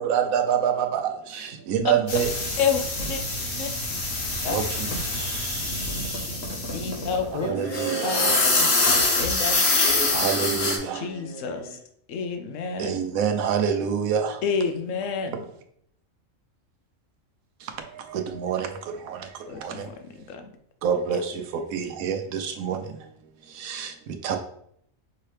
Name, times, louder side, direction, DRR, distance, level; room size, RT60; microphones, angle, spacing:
voice 1, 0.1-0.7 1.7-2.3 4.5-4.6 10.1-10.7 12.8-14.2 18.4-18.6 20.8-21.2 21.7-22.2 22.7-22.8 24.2-24.4, right 8 dB, 85° right, 6 dB, 1.1 m, -24 dB
sound 1, 2.1-7.4 7.6-10.8, left 2 dB, 55° left, 1.1 m, -25 dB
voice 2, 2.6-3.2 3.6-3.7 4.4-4.6 6.7-7.5 8.0-8.3 8.6-9.6 10.9-11.8 12.1-13.0 14.4-15.5 19.5-20.5 21.1-21.2, left 5 dB, 70° left, 6 dB, 1.0 m, -29 dB
voice 3, 7.4-8.8 9.8-11.8 18.8-19.9, right 4 dB, 25° right, -5 dB, 1.7 m, -36 dB
5.5 x 2.8 x 3.3 m, 0.69 s
omnidirectional pair, 1.4 m